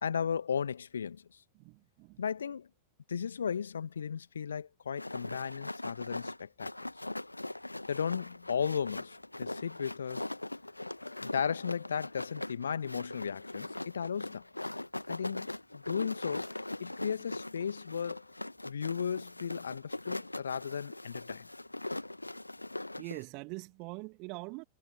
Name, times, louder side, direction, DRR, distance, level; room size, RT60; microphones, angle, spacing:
voice 1, 0.0-1.4 2.2-2.7 3.1-6.7 7.9-10.3 11.1-14.5 15.1-16.5 16.8-18.2 18.6-21.5, left 7 dB, 70° left, 1.5 m, -35 dB
voice 2, 1.6-2.2 23.0-24.6, right 30 dB, 45° right, 2.3 m, -43 dB
sound 1, 5.0-23.2, left 2 dB, 85° left, 1.3 m, -41 dB
figure-of-eight pair, 90°, 0 cm